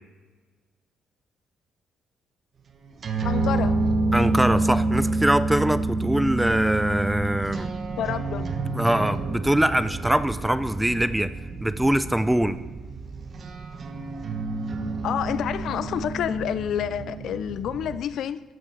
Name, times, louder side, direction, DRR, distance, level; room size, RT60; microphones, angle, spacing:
sound 1, 2.9-18.0, right 2 dB, 40° right, 0.9 m, -28 dB
voice 1, 3.2-3.8 8.0-8.5 15.0-18.4, left 10 dB, 65° left, 0.4 m, -28 dB
voice 2, 4.1-7.7 8.7-11.3 11.6-12.6, right 1 dB, 5° right, 0.4 m, -23 dB
12.5 x 6.9 x 5.0 m
cardioid pair, 135°, 0 cm